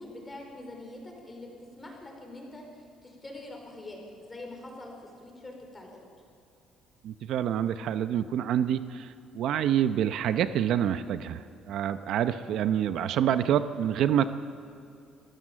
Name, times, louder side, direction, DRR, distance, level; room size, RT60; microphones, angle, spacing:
voice 1, 0.0-1.5 1.8-6.0, left 2 dB, 20° left, 1 dB, 4.7 m, -44 dB
voice 2, 7.0-14.2, right 10 dB, 70° right, 11 dB, 0.7 m, -27 dB
26.0 x 14.0 x 7.5 m, 2.4 s
cardioid pair, 120°, 0 cm